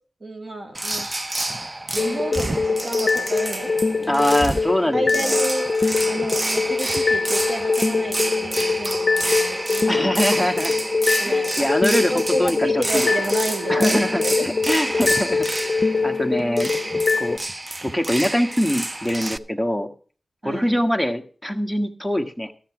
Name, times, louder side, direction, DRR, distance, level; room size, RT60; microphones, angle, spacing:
voice 1, 0.2-1.1 1.9-4.2 4.9-5.7 6.1-10.2 11.2-11.7 12.1-14.9 20.4-20.9, right 1 dB, 55° right, 3 dB, 2.7 m, -31 dB
sound 1, 0.7-19.4, right 1 dB, 30° right, 0.6 m, -28 dB
sound 2, 2.0-17.4, left 4 dB, 45° left, 0.6 m, -23 dB
voice 2, 4.1-5.4 9.9-10.7 11.2-13.0 13.7-15.5 15.8-16.7 17.2-17.4 17.8-19.9 20.4-22.5, equal, ahead, 7 dB, 1.4 m, -23 dB
13.0 x 7.4 x 5.9 m, 0.40 s
wide cardioid pair, 75°, 0 cm